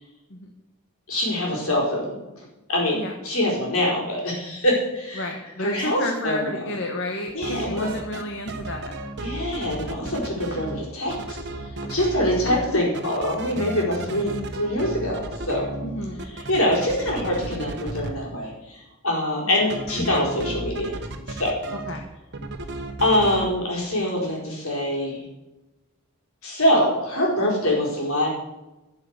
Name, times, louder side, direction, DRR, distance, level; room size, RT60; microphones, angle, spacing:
voice 1, 1.1-2.2 2.7-3.0 3.2-5.3 5.6-6.7 7.3-7.9 9.2-11.4 11.9-15.2 15.5-15.7 16.3-18.8 19.0-21.0 21.3-21.6 23.0-25.2 26.4-28.3, left 1 dB, 75° left, -3 dB, 4.6 m, -24 dB
voice 2, 5.2-9.0 12.2-12.6 15.8-16.3 19.5-19.6 21.9-22.0, left 1 dB, 55° left, 3 dB, 1.3 m, -31 dB
sound 1, 7.3-8.2 8.5-10.8 11.1-12.7 12.9-18.1 19.7-22.0 22.3-23.5, right 2 dB, 50° right, 1.3 m, -33 dB
13.0 x 6.9 x 6.6 m, 1.0 s
head